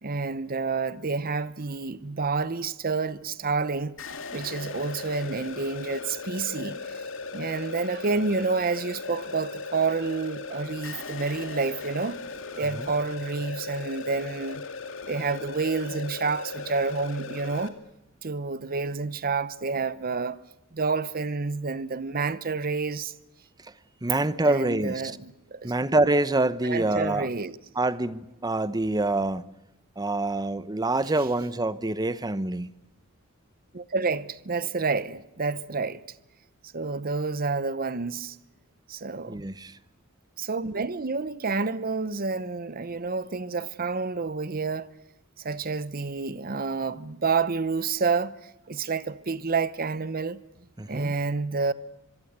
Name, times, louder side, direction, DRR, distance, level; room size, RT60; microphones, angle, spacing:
voice 1, 0.0-4.0 4.3-7.0 7.3-12.2 12.5-14.6 15.1-17.7 18.2-20.4 20.7-23.1 24.4-25.7 26.6-27.6 33.7-36.0 36.7-38.4 38.9-39.4 40.4-44.9 45.4-48.4 48.7-50.4 50.9-51.7, right 4 dB, 45° right, 0.9 m, -29 dB
sound 1, 4.0-17.7, left 4 dB, 65° left, 2.5 m, -38 dB
voice 2, 24.0-25.1 25.6-27.3 27.8-29.5 30.0-32.7 39.3-39.7 50.8-51.1, right 2 dB, 20° right, 0.9 m, -26 dB
25.5 x 23.0 x 8.2 m
head